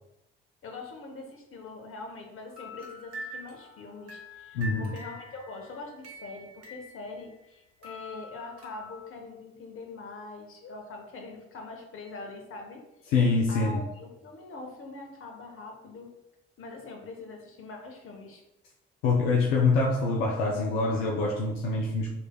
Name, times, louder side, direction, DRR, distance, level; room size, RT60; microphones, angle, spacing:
voice 1, 0.6-12.8 13.5-16.1 16.6-18.4, left 3 dB, 45° left, 3 dB, 1.0 m, -43 dB
sound 1, 2.5-7.5 7.8-9.1, equal, 55° right, 1.3 m, -45 dB
voice 2, 4.5-4.9 13.1-13.8 19.0-22.1, left 3 dB, 70° left, -1 dB, 0.6 m, -25 dB
5.5 x 3.2 x 2.2 m, 0.91 s
figure-of-eight pair, 45°, 30 cm